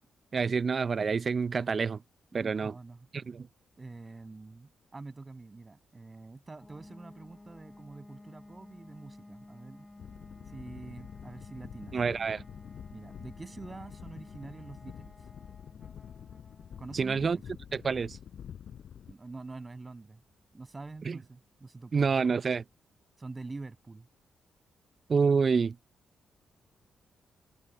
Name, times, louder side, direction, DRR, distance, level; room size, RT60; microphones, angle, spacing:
voice 1, 0.3-2.0 2.3-2.7 3.1-3.5 11.9-12.4 16.9-17.4 17.7-18.2 21.0-21.2 21.9-22.6 25.1-25.8, right 5 dB, 50° right, 0.8 m, -27 dB
voice 2, 2.3-3.1 3.8-9.9 10.5-12.0 12.9-15.1 16.8-17.4 19.1-20.2 20.5-22.1 23.2-24.1, right 3 dB, 30° right, 7.6 m, -46 dB
sound 1, 6.6-21.2, left 2 dB, 20° left, 4.9 m, -54 dB
sound 2, 10.0-19.1, left 8 dB, 65° left, 4.5 m, -47 dB
hypercardioid pair, 45°, 0 cm